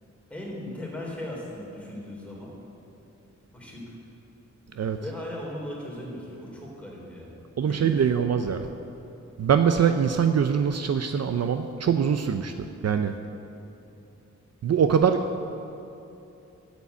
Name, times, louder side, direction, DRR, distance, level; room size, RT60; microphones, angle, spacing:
voice 1, 0.3-2.5 3.5-4.0 5.0-7.3 7.7-8.1, left 1 dB, 5° left, -4 dB, 3.6 m, -38 dB
voice 2, 7.6-8.7 9.4-12.5 12.8-13.1 14.6-15.4, right 7 dB, 55° right, 7 dB, 0.6 m, -23 dB
12.5 x 8.3 x 8.3 m, 2.9 s
wide cardioid pair, 145°, 30 cm